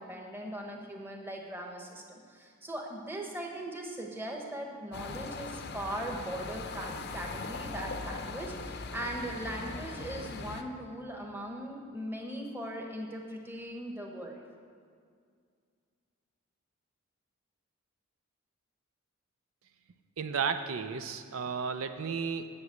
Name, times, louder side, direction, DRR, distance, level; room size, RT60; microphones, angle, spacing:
voice 1, 0.0-14.4, right 1 dB, 10° right, 1 dB, 1.1 m, -39 dB
sound 1, 4.9-10.6, left 3 dB, 50° left, 0.5 m, -40 dB
voice 2, 20.2-22.5, right 6 dB, 80° right, 9 dB, 0.5 m, -33 dB
8.0 x 7.1 x 8.0 m, 2.2 s
head